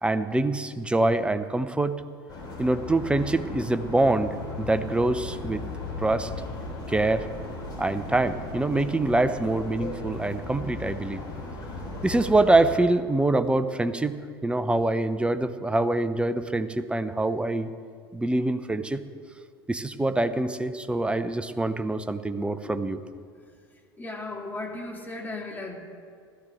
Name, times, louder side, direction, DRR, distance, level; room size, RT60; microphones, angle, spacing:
voice 1, 0.0-2.0 2.6-5.6 6.0-6.3 6.9-7.3 7.8-11.2 12.0-14.2 14.4-17.7 18.1-19.0 19.7-23.0, right 2 dB, 10° right, 11 dB, 0.7 m, -25 dB
sound 1, 2.3-12.7, left 2 dB, 30° left, 3.9 m, -37 dB
voice 2, 24.0-25.8, left 2 dB, 15° left, 2 dB, 2.1 m, -36 dB
16.5 x 13.5 x 3.5 m, 2.2 s
figure-of-eight pair, 70°, 13 cm